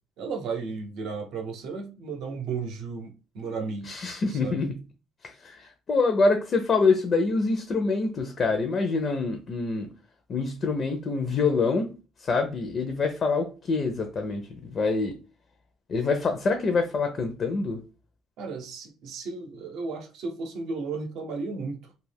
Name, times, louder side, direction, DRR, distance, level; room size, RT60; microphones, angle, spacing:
voice 1, 0.2-3.9 4.3-4.6 18.4-21.9, right 4 dB, 75° right, 0.6 m, -34 dB
voice 2, 3.8-4.8 5.2-9.9 10.3-11.9 12.2-15.2 15.9-17.8, left 4 dB, 45° left, 0.5 m, -25 dB
2.3 x 2.1 x 3.3 m
cardioid pair, 95°, 0 cm